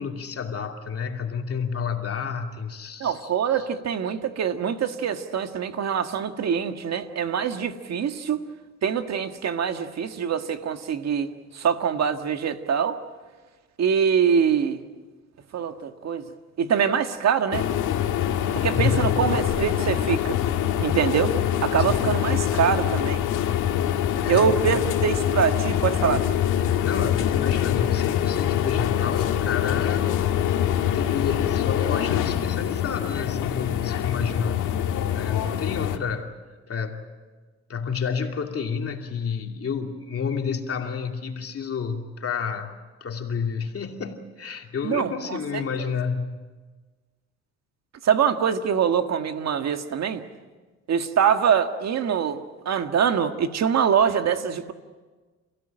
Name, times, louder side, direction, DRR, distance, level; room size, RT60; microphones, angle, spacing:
voice 1, 0.0-3.3 18.7-19.2 21.9-22.1 24.2-24.8 26.6-30.2 30.8-34.8 35.1-36.3 36.7-37.0 37.7-46.4, left 6 dB, 50° left, 3 dB, 2.7 m, -30 dB
voice 2, 3.0-8.4 8.8-13.0 13.8-14.8 15.5-16.3 16.6-17.7 18.5-20.4 20.8-21.3 21.6-23.2 24.3-26.2 27.0-27.1 44.8-45.9 48.0-50.2 50.9-52.4 52.7-54.7, right 7 dB, 60° right, 7 dB, 1.7 m, -24 dB
sound 1, 17.5-36.0, left 10 dB, 90° left, 1.9 m, -24 dB
29.5 x 16.5 x 8.9 m, 1.4 s
cardioid pair, 90°, 30 cm